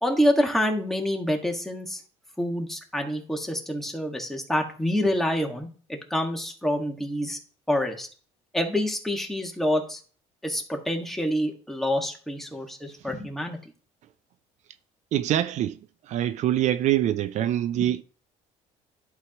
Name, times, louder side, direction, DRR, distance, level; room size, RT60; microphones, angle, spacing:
voice 1, 0.0-2.0 2.4-7.4 7.7-8.1 8.5-10.0 10.4-13.6 17.8-17.9, equal, ahead, 1.8 m, -27 dB
voice 2, 15.1-15.8 16.1-18.0, right 12 dB, 60° right, 0.5 m, -24 dB
11.5 x 4.7 x 3.0 m
supercardioid pair, 95°, 14 cm